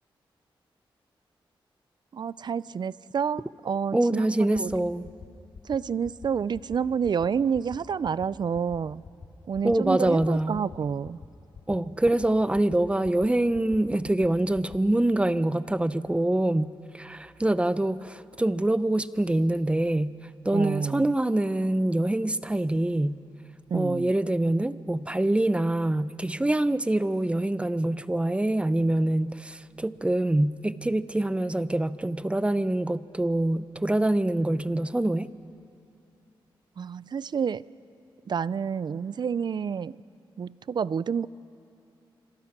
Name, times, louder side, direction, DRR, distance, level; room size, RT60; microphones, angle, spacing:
voice 1, 2.1-4.2 4.5-4.7 5.6-9.0 9.5-11.2 20.5-21.1 23.7-24.1 36.8-37.7 38.3-40.0 40.4-41.3, right 7 dB, 55° right, 19 dB, 0.5 m, -29 dB
voice 2, 3.9-5.1 9.6-10.6 11.7-20.2 20.4-23.2 23.7-35.3, right 1 dB, 10° right, 15 dB, 0.7 m, -25 dB
sound 1, 4.5-4.8 5.0-5.3 5.5-5.8 6.0-6.3 6.5-6.8 7.0-7.3 7.5-7.8 8.0-8.3 8.5-8.8 9.0-9.3 9.5-9.8 10.0-10.3 10.5-10.8 11.0-11.3 11.5-11.8 12.0-12.3 12.5-12.8 13.0-13.3 13.5-13.8 14.0-14.3 14.5-14.8, left 5 dB, 70° left, 3.3 m, -44 dB
26.5 x 26.0 x 6.0 m, 2.7 s
cardioid pair, 80°, 9 cm